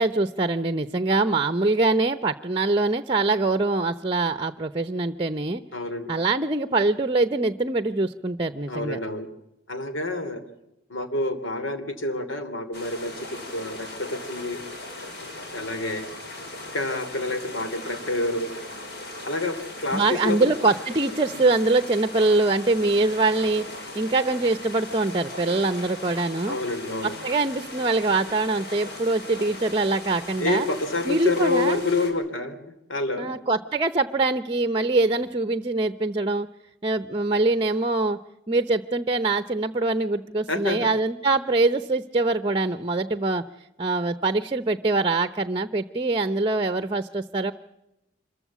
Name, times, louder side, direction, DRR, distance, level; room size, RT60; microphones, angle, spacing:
voice 1, 0.0-5.6 6.1-9.0 19.9-23.6 24.0-26.6 27.0-30.7 31.1-31.8 33.2-36.5 36.8-38.2 38.5-43.4 43.8-47.5, right 3 dB, 25° right, 12 dB, 0.8 m, -23 dB
voice 2, 5.7-6.1 8.7-9.3 9.7-10.4 10.9-14.6 15.5-16.0 16.7-18.5 19.2-20.5 26.5-27.1 30.4-32.6 32.9-33.3 40.5-40.9, left 2 dB, 85° left, 8 dB, 3.0 m, -28 dB
sound 1, 12.7-32.1, left 2 dB, 55° left, 5.0 m, -38 dB
26.0 x 15.0 x 8.3 m, 0.88 s
head